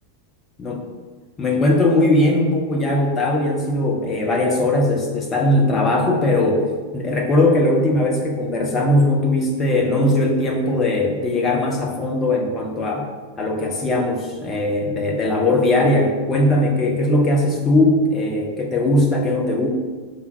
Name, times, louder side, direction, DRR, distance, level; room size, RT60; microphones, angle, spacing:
voice 1, 1.4-6.6 6.9-13.1 13.4-19.7, left 1 dB, 20° left, 0 dB, 1.1 m, -19 dB
5.5 x 3.7 x 4.6 m, 1.4 s
figure-of-eight pair, 90°, 0 cm